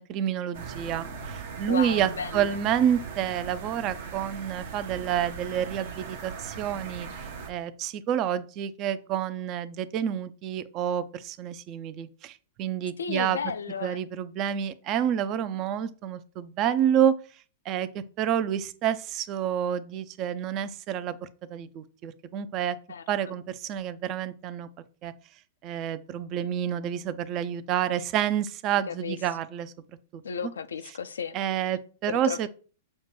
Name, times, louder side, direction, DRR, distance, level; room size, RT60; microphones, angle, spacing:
voice 1, 0.0-7.1 7.5-13.4 13.8-17.1 17.7-22.8 23.1-24.7 25.0-25.1 25.6-29.7 30.1-30.2 31.3-32.5, right 9 dB, 40° right, 0.4 m, -29 dB
sound 1, 0.5-7.5, right 5 dB, 65° right, 0.8 m, -39 dB
voice 2, 1.6-2.6 13.0-14.0 22.9-23.4 28.9-29.2 30.2-31.4 32.1-32.5, left 7 dB, 80° left, 0.3 m, -34 dB
6.3 x 2.2 x 3.1 m
hypercardioid pair, 105°, 0 cm